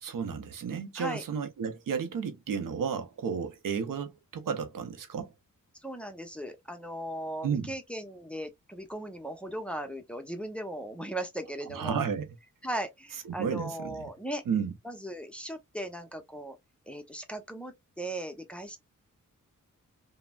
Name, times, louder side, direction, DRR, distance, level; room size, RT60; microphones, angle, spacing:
voice 1, 0.0-5.3 7.4-7.7 11.7-12.3 13.3-14.0 14.5-14.7, right 6 dB, 80° right, 0.6 m, -32 dB
voice 2, 5.8-12.0 12.6-14.4 14.8-16.6 16.9-18.8, right 1 dB, 5° left, 0.6 m, -38 dB
3.1 x 2.1 x 2.2 m
wide cardioid pair, 85°, 33 cm